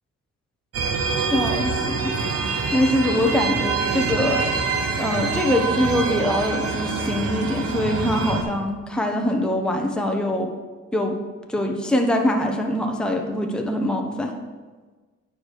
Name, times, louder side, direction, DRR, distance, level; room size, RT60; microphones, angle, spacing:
sound 1, 0.7-8.4, right 4 dB, 50° right, 1.1 m, -25 dB
voice 1, 1.3-2.2 2.7-4.5 5.0-10.5 10.9-11.2 11.5-14.3, left 1 dB, 5° left, 2 dB, 0.9 m, -23 dB
9.5 x 4.9 x 4.7 m, 1.3 s
cardioid pair, 90°, 30 cm